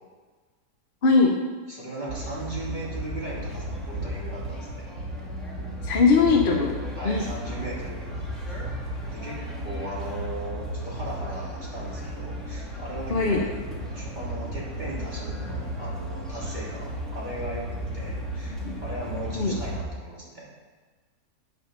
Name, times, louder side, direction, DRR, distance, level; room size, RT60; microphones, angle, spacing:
voice 1, 1.0-1.4 5.8-6.8 7.0-7.3 13.1-13.4 18.6-18.7 19.3-19.6, left 4 dB, 45° left, 1 dB, 0.8 m, -20 dB
voice 2, 1.7-4.9 7.0-8.1 8.5-8.6 9.1-13.5 13.9-20.5, right 2 dB, 25° right, -7 dB, 3.3 m, -37 dB
sound 1, 2.1-19.8, equal, ahead, 2.1 m, -34 dB
9.6 x 6.6 x 6.6 m, 1.4 s
omnidirectional pair, 1.9 m